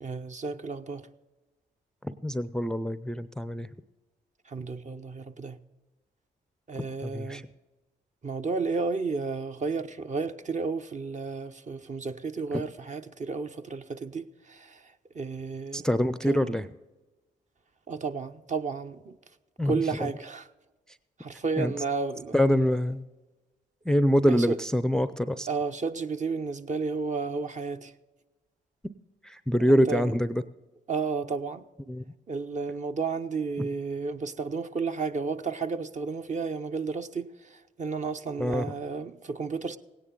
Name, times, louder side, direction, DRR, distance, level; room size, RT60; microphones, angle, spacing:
voice 1, 0.0-1.1 4.5-5.6 6.7-7.4 8.2-14.8 15.1-15.9 16.3-16.4 17.9-19.2 19.6-20.5 21.2-22.3 24.3-24.6 25.5-27.9 29.7-30.1 30.9-31.6 32.3-39.8, right 4 dB, 40° right, 0.8 m, -32 dB
voice 2, 2.0-3.7 6.8-7.4 12.5-12.6 15.7-16.7 19.6-20.1 21.6-21.7 22.3-23.0 23.9-25.5 29.2-30.4 31.9-32.0 33.6-33.7 38.4-38.7, equal, 5° left, 0.5 m, -25 dB
16.5 x 9.7 x 3.8 m
supercardioid pair, 55°, 19 cm